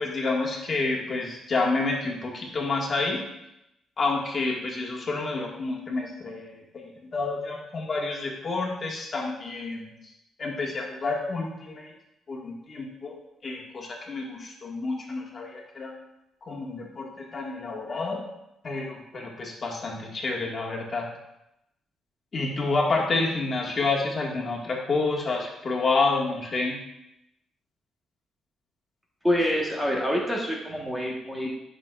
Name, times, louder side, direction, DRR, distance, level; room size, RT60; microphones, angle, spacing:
voice 1, 0.0-3.2 4.0-6.5 7.1-9.8 10.4-11.9 12.3-13.1 13.4-15.9 16.4-18.2 18.6-21.1 22.3-26.8, left 3 dB, 40° left, -2 dB, 1.9 m, -29 dB
voice 2, 29.2-31.5, equal, 5° right, -2 dB, 1.5 m, -26 dB
11.0 x 6.3 x 2.5 m, 0.85 s
cardioid pair, 90°, 0 cm